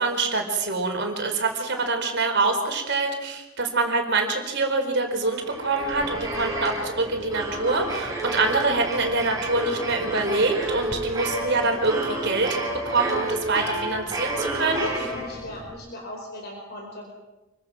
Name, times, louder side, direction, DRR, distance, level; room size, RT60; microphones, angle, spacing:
voice 1, 0.0-15.1, right 3 dB, 50° right, 3 dB, 4.6 m, -25 dB
sound 1, 5.3-15.7, right 1 dB, 15° right, 6.7 m, -30 dB
voice 2, 14.7-17.1, left 1 dB, 45° left, 0 dB, 4.8 m, -39 dB
28.5 x 24.5 x 6.1 m, 1.1 s
head